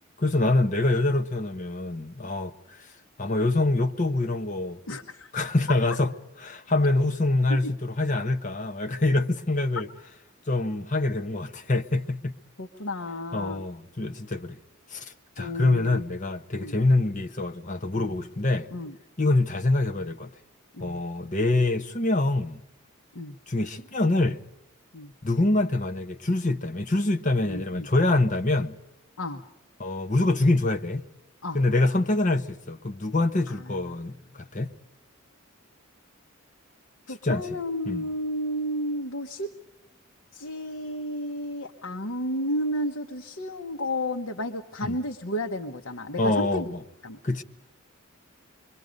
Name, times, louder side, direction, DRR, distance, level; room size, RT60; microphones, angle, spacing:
voice 1, 0.2-2.9 3.2-4.8 5.3-6.1 6.4-9.9 10.5-12.4 13.3-14.6 14.9-18.7 19.2-20.3 20.8-22.6 23.5-24.4 25.2-28.8 29.8-31.1 31.5-34.7 37.2-37.6 37.9-38.1 44.8-45.0 46.2-46.8 47.2-47.4, left 2 dB, 35° left, 1.0 m, -25 dB
voice 2, 4.9-5.3 7.5-7.7 12.6-13.6 15.4-16.0 16.6-16.8 18.7-18.9 20.7-21.0 23.1-23.4 24.9-25.1 27.4-27.9 29.2-29.4 31.4-31.6 33.5-33.6 37.1-39.5 40.3-46.7 47.0-47.2, left 1 dB, 75° left, 1.2 m, -32 dB
26.5 x 23.0 x 5.3 m
head